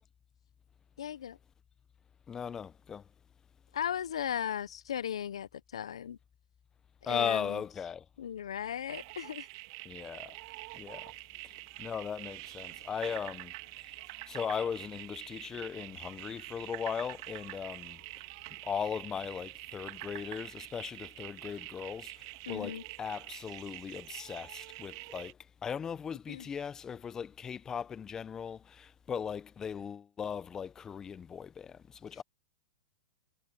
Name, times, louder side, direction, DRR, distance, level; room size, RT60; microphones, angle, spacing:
voice 1, 1.0-1.4 3.7-6.2 7.0-7.6 8.2-9.5 22.5-22.8 26.3-26.5, left 9 dB, 80° left, 0.9 m, -37 dB
voice 2, 2.3-3.0 7.0-8.0 9.8-10.4 10.7-11.1 11.4-11.5 11.8-13.5 14.3-18.0 18.6-25.4 25.6-32.2, left 7 dB, 20° left, 0.8 m, -38 dB
sound 1, 8.9-25.3, right 24 dB, 55° right, 2.4 m, -46 dB
hypercardioid pair, 120°, 3 cm